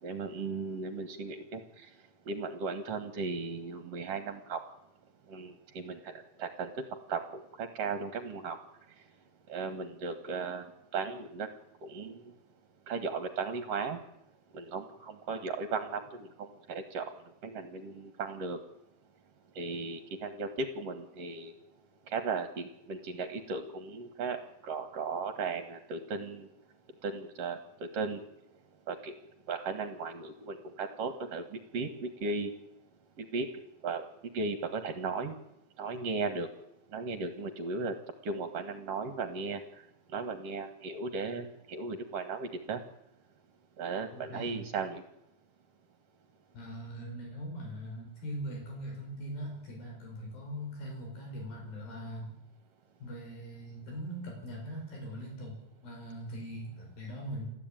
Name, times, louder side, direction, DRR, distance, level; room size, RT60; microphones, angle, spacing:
voice 1, 0.0-1.9 2.3-4.6 5.3-6.1 6.4-6.7 7.1-8.6 9.5-10.7 10.9-11.5 11.8-12.2 12.9-14.0 14.5-17.1 17.4-18.6 19.6-21.5 22.1-26.5 27.0-28.2 28.9-29.1 29.5-32.5 33.2-33.5 33.8-34.0 34.3-35.3 35.8-36.5 36.9-37.9 38.2-39.6 40.1-42.8 43.8-45.0, right 4 dB, 55° right, 8 dB, 2.3 m, -36 dB
voice 2, 44.1-44.6 46.5-52.3 53.0-57.5, equal, 85° left, 0 dB, 7.6 m, -41 dB
30.0 x 13.0 x 9.1 m, 0.86 s
omnidirectional pair, 4.0 m